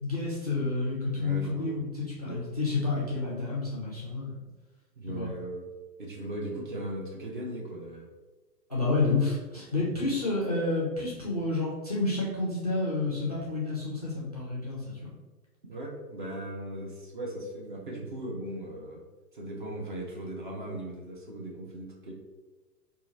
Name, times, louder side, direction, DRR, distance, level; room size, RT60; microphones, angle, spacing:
voice 1, 0.0-4.4 5.1-5.3 8.7-15.1, left 3 dB, 25° left, -6 dB, 0.4 m, -30 dB
voice 2, 1.1-1.7 2.2-2.4 5.0-5.7 6.0-8.1 15.7-19.0 19.3-22.1, right 1 dB, 30° right, -2 dB, 0.5 m, -38 dB
2.8 x 2.4 x 4.0 m, 1.2 s
figure-of-eight pair, 120°, 50 cm